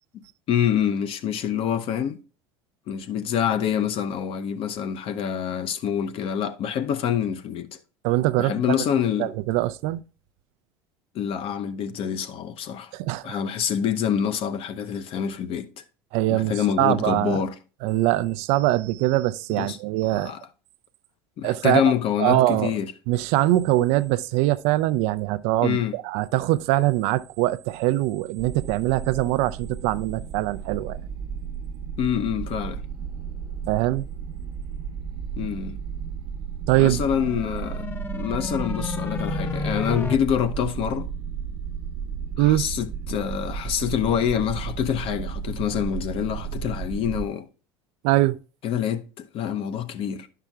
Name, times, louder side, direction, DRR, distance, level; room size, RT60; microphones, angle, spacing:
voice 1, 0.5-2.2 2.9-7.8 8.4-9.3 11.1-12.9 13.2-15.8 16.3-17.5 19.6-19.8 20.1-20.4 21.4-22.9 25.6-26.0 32.0-32.8 35.4-35.8 36.8-37.9 38.1-41.1 42.4-47.5 48.6-50.3, left 9 dB, 50° left, 0.7 m, -26 dB
voice 2, 8.0-8.8 9.2-10.0 12.9-13.4 16.1-17.4 17.8-20.3 21.4-21.9 22.2-22.7 23.1-31.0 33.7-34.1 36.7-37.0 42.4-42.7 48.0-48.4, right 16 dB, 60° right, 0.4 m, -22 dB
sound 1, 28.4-47.3, right 7 dB, 45° right, 0.9 m, -33 dB
sound 2, 36.9-40.2, left 4 dB, 15° left, 0.7 m, -32 dB
10.5 x 5.7 x 2.4 m
hypercardioid pair, 80°, 12 cm